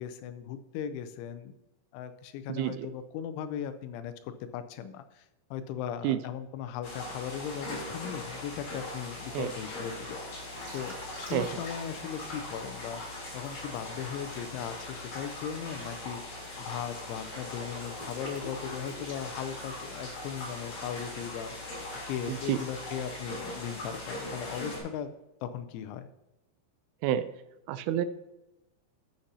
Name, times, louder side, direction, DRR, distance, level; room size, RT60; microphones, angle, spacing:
voice 1, 0.0-1.5 1.9-5.3 5.5-10.2 10.7-13.0 13.3-21.7 22.1-25.1 25.4-26.1, left 8 dB, 85° left, 10 dB, 2.9 m, -38 dB
voice 2, 2.5-2.9 6.0-6.2 9.3-9.5 11.3-11.5 22.3-22.6 27.0-27.3 27.7-28.1, right 11 dB, 85° right, 13 dB, 3.1 m, -29 dB
sound 1, 6.8-24.8, left 2 dB, 50° left, 4.8 m, -40 dB
Liquid, 10.5-12.5 13.0-20.0, equal, 30° right, 0.8 m, -48 dB
13.0 x 6.6 x 2.7 m, 0.98 s
omnidirectional pair, 5.6 m